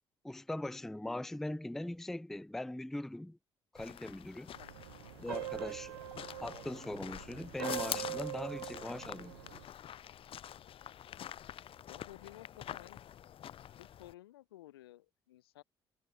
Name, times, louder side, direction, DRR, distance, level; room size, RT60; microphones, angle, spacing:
voice 1, 0.2-3.4 3.7-4.5 5.2-9.3, left 1 dB, 5° left, 0.3 m, -41 dB
sound 1, 3.7-14.1, left 10 dB, 45° left, 0.6 m, -46 dB
sound 2, 4.5-9.6, right 16 dB, 80° right, 0.5 m, -43 dB
voice 2, 11.9-13.0 13.8-15.6, left 15 dB, 80° left, 0.9 m, -54 dB
figure-of-eight pair, 45°, 13 cm